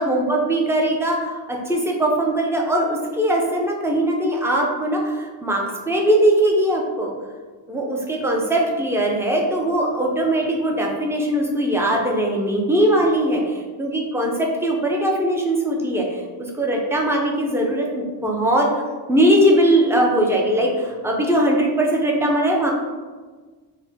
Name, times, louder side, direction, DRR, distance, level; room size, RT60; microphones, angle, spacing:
voice 1, 0.0-7.1 7.7-18.7 19.1-22.7, right 1 dB, 5° right, -1 dB, 0.6 m, -20 dB
4.6 x 2.1 x 3.5 m, 1.4 s
cardioid pair, 110°, 47 cm